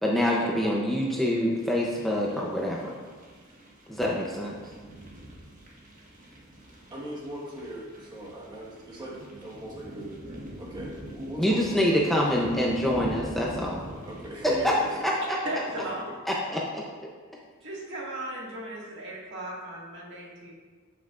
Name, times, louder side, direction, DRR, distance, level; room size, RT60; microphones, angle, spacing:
voice 1, 0.0-2.9 3.9-4.6 11.4-13.8 14.4-14.7 15.0-15.4 16.3-16.8, equal, ahead, -4 dB, 0.6 m, -26 dB
sound 1, 1.5-14.9, right 1 dB, 40° right, 1.5 m, -44 dB
voice 2, 6.9-10.2 10.6-12.1 14.1-15.1 15.7-15.8, right 1 dB, 20° right, -4 dB, 1.4 m, -39 dB
voice 3, 15.4-16.2 17.6-20.5, right 1 dB, 60° right, -4 dB, 1.9 m, -36 dB
12.5 x 5.8 x 2.5 m, 1.5 s
head